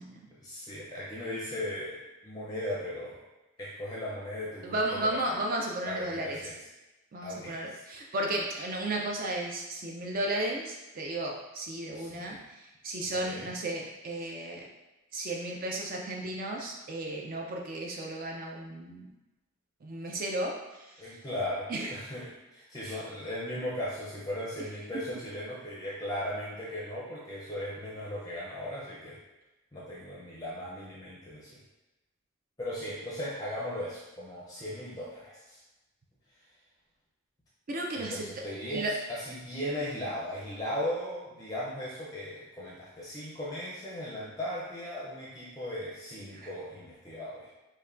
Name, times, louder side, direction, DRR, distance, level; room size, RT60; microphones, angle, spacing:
voice 1, 0.4-3.2 3.6-4.7 5.0-5.2 5.9-6.5 7.2-7.5 11.9-12.4 13.1-13.5 21.0-29.2 29.7-31.5 32.6-35.6 38.0-47.5, left 1 dB, 15° left, -6 dB, 0.5 m, -37 dB
voice 2, 4.6-6.5 7.1-14.7 15.1-19.1 19.8-21.2 21.7-21.9 22.8-23.0 24.9-25.0 37.7-38.4 38.7-38.9 46.3-46.5, right 1 dB, 40° right, 0 dB, 0.4 m, -34 dB
5.4 x 2.2 x 2.4 m, 1.0 s
head